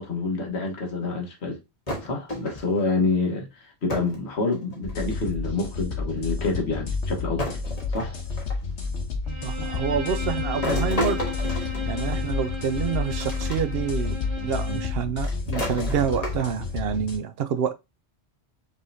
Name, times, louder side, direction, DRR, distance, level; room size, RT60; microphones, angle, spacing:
voice 1, 0.0-1.6 2.0-7.6 7.9-8.1, left 3 dB, 75° left, 1.6 m, -27 dB
sound 1, 1.9-2.8 3.9-4.2 4.5-5.1 6.2-6.3 7.4-8.7 10.6-12.5 13.2-13.6 14.0-14.1 15.2-16.7, left 1 dB, 35° left, 1.4 m, -32 dB
sound 2, 4.8-17.2, left 3 dB, 90° left, 1.3 m, -30 dB
Bowed string instrument, 9.3-15.1, left 5 dB, 50° right, 1.4 m, -35 dB
voice 2, 9.4-11.2 11.9-17.7, right 7 dB, 70° right, 0.8 m, -28 dB
5.3 x 3.3 x 2.7 m
omnidirectional pair, 1.1 m